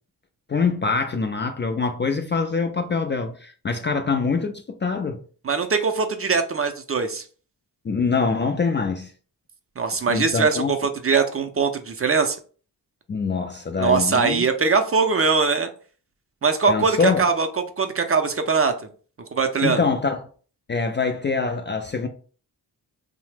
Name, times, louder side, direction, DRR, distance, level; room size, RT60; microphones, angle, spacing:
voice 1, 0.5-5.2 7.8-9.1 10.1-10.7 13.1-14.4 16.7-17.3 19.6-20.2 20.7-22.1, left 4 dB, 30° left, 0.3 m, -24 dB
voice 2, 5.4-7.2 9.8-12.4 13.8-15.7 16.4-17.5 17.8-18.7 19.3-19.8, right 5 dB, 35° right, 0.5 m, -21 dB
2.7 x 2.1 x 3.2 m
cardioid pair, 45°, 43 cm